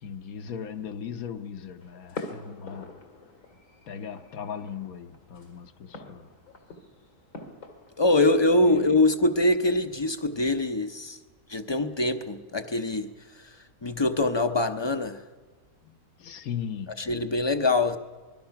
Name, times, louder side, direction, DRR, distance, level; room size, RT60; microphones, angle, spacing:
voice 1, 0.0-3.0 3.9-6.3 8.6-9.0 15.8-15.9 16.2-17.1, left 7 dB, 70° left, 1.3 m, -38 dB
sound 1, 1.8-8.4, left 3 dB, 85° left, 2.8 m, -45 dB
voice 2, 8.0-11.2 11.5-13.1 13.4-13.5 13.8-15.2 17.0-18.0, left 2 dB, 30° left, 0.5 m, -24 dB
26.0 x 21.0 x 5.8 m
omnidirectional pair, 1.6 m